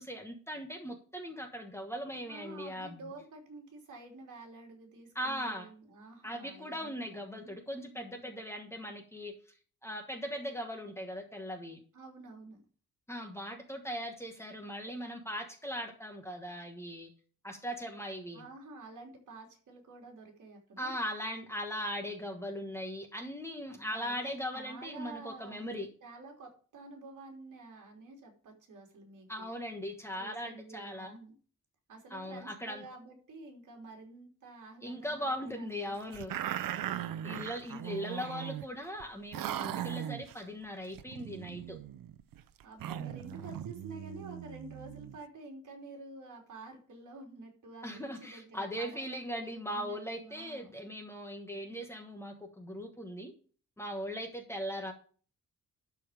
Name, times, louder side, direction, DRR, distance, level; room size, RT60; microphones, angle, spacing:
voice 1, 0.0-3.0 5.1-5.7 6.2-9.6 9.8-11.8 13.1-17.1 17.4-18.4 20.8-25.9 29.3-31.1 32.1-32.8 34.8-36.4 37.2-41.8 47.8-53.3 53.8-54.9, equal, 10° left, 4 dB, 1.3 m, -39 dB
voice 2, 2.3-7.6 7.9-8.3 11.9-12.6 18.3-21.0 23.7-25.6 26.0-29.5 30.2-31.3 31.9-36.4 42.6-50.8, right 2 dB, 65° right, 1 dB, 3.2 m, -50 dB
sound 1, 36.1-38.7 39.0-39.1 39.3-40.4 40.9-45.2, right 11 dB, 85° right, 0.7 m, -39 dB
12.0 x 4.6 x 5.0 m, 0.41 s
wide cardioid pair, 165°, 33 cm